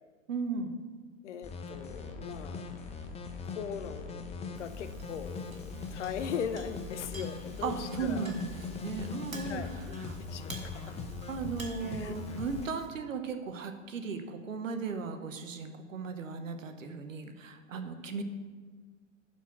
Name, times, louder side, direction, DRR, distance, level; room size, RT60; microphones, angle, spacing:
voice 1, 0.3-0.8 7.6-10.2 10.7-10.9 11.3-18.2, right 5 dB, 70° right, 7 dB, 1.1 m, -37 dB
voice 2, 1.2-2.7 3.4-8.3 9.5-10.8 11.9-12.1, left 7 dB, 60° left, 10 dB, 0.8 m, -40 dB
sound 1, 1.4-12.7, left 4 dB, 15° left, 0.8 m, -40 dB
Chink clink, 4.5-12.9, right 2 dB, 90° right, 1.8 m, -51 dB
11.0 x 4.5 x 6.0 m, 1.5 s
figure-of-eight pair, 100°, 40 cm